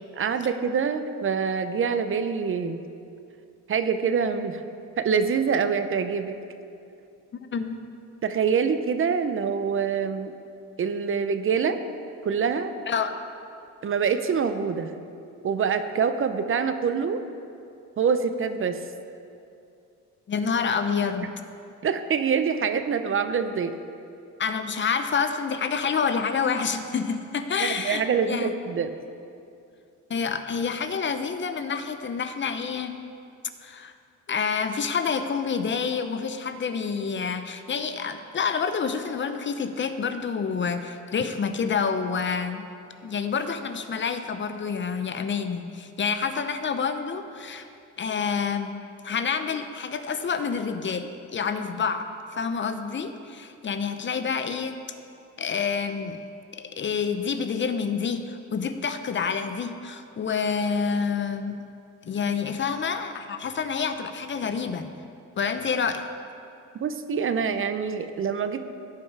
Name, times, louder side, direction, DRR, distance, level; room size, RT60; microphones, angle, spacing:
voice 1, 0.2-2.8 3.7-4.6 5.0-6.3 8.2-10.3 10.8-11.8 12.2-12.7 13.8-15.0 15.4-17.2 18.0-18.8 21.2-21.3 21.8-23.8 27.6-28.9 66.8-68.6, right 6 dB, 45° right, 10 dB, 0.6 m, -25 dB
voice 2, 7.4-7.8 12.9-13.1 20.3-21.3 24.4-28.5 30.1-33.0 33.6-33.9 34.3-42.6 43.0-47.7 48.0-54.8 55.4-56.2 56.5-61.6 62.1-64.9 65.4-66.1, left 6 dB, 40° left, 9 dB, 0.7 m, -28 dB
16.0 x 5.4 x 4.7 m, 2.6 s
cardioid pair, 90°, 30 cm